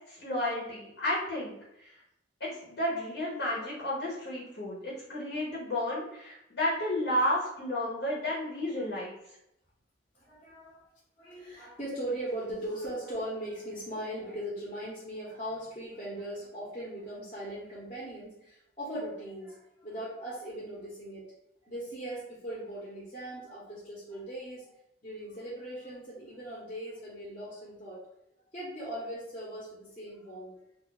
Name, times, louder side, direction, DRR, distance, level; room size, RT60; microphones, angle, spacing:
voice 1, 0.1-1.9 2.4-9.2, left 1 dB, 60° left, -6 dB, 0.9 m, -32 dB
voice 2, 10.1-10.8 11.2-21.2 21.6-24.7 25.0-28.0 28.5-30.5, right 1 dB, 30° left, -7 dB, 0.9 m, -39 dB
2.6 x 2.3 x 3.9 m, 0.81 s
head